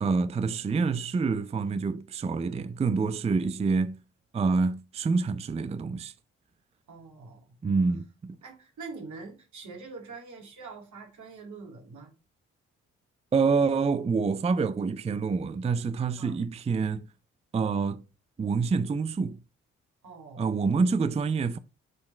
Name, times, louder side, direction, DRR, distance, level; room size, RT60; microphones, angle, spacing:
voice 1, 0.0-4.0 4.3-6.1 7.6-8.4 13.3-17.1 17.5-18.0 18.4-19.4 20.4-21.6, right 4 dB, 20° right, 0.5 m, -27 dB
voice 2, 6.9-7.6 8.4-12.1 16.2-16.4 20.0-20.5, right 4 dB, 60° right, 2.0 m, -44 dB
6.6 x 3.7 x 4.3 m
hypercardioid pair, 45°, 33 cm